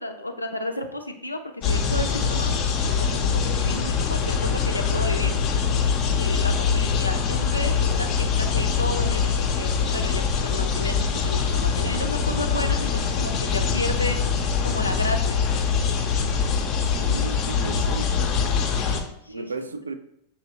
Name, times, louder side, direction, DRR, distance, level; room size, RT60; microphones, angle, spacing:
voice 1, 0.0-5.3 6.2-14.2 14.6-15.4 18.4-19.5, left 1 dB, 85° left, 5 dB, 0.5 m, -32 dB
sound 1, 1.6-19.0, left 6 dB, 35° left, 0.6 m, -23 dB
voice 2, 16.9-18.2 19.3-19.9, right 3 dB, 75° right, 10 dB, 0.3 m, -34 dB
6.1 x 2.8 x 2.8 m, 0.76 s
figure-of-eight pair, 90°, 0 cm